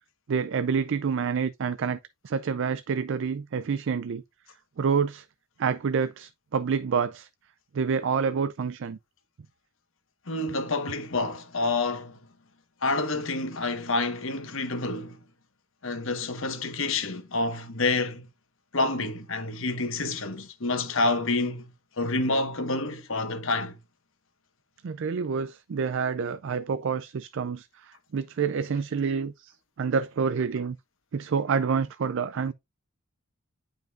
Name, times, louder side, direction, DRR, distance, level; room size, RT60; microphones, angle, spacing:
voice 1, 0.3-4.2 4.8-5.3 5.6-7.3 7.7-9.0 24.8-30.8 31.1-32.5, right 6 dB, 60° right, 0.4 m, -28 dB
voice 2, 10.3-12.2 12.8-15.2 15.8-18.3 18.7-21.6 22.0-23.8, left 2 dB, 65° left, 1.3 m, -28 dB
9.2 x 5.2 x 2.5 m
head